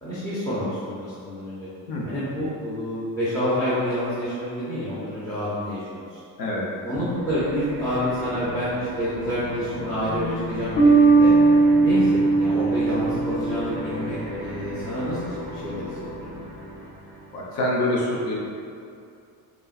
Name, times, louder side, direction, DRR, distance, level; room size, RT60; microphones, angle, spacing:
voice 1, 0.0-1.7 2.1-6.2 6.8-11.3 11.8-16.4, equal, 10° left, -12 dB, 0.6 m, -28 dB
voice 2, 6.4-6.7 17.3-18.3, left 1 dB, 75° left, -4 dB, 0.9 m, -25 dB
sound 1, 7.0-17.5, left 1 dB, 10° right, 1.0 m, -35 dB
sound 2, 10.8-14.1, right 3 dB, 35° left, 0.9 m, -18 dB
5.3 x 3.0 x 2.4 m, 2.5 s
cardioid pair, 175°, 37 cm